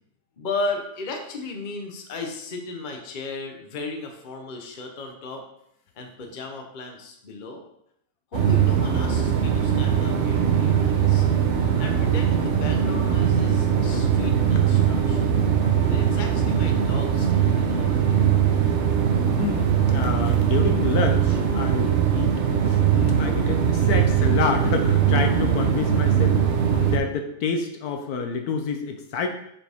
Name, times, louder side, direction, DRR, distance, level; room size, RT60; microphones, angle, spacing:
voice 1, 0.4-5.4 5.9-7.6 8.3-11.3 11.8-15.4 15.9-18.3, left 3 dB, 35° left, 3 dB, 0.9 m, -35 dB
sound 1, 8.3-27.0, right 8 dB, 55° right, 0.9 m, -21 dB
voice 2, 19.4-26.4 26.7-29.3, left 5 dB, 70° left, 5 dB, 1.2 m, -28 dB
7.1 x 4.8 x 3.5 m, 0.76 s
omnidirectional pair, 1.7 m